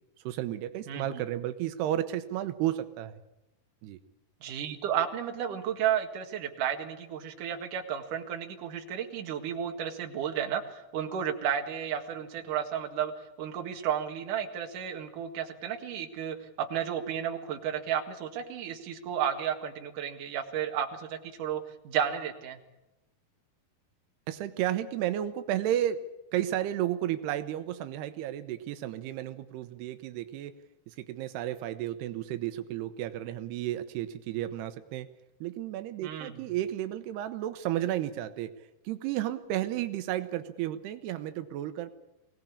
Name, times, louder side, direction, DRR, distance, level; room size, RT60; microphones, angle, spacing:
voice 1, 0.2-3.2 3.8-4.0 24.3-26.1 26.3-30.5 30.9-35.1 35.4-41.9, right 12 dB, 85° right, 10 dB, 3.0 m, -32 dB
voice 2, 0.9-1.2 4.4-13.1 13.4-22.6 36.0-36.4, right 9 dB, 60° right, 4 dB, 3.2 m, -33 dB
24.0 x 18.0 x 8.5 m, 0.98 s
omnidirectional pair, 4.6 m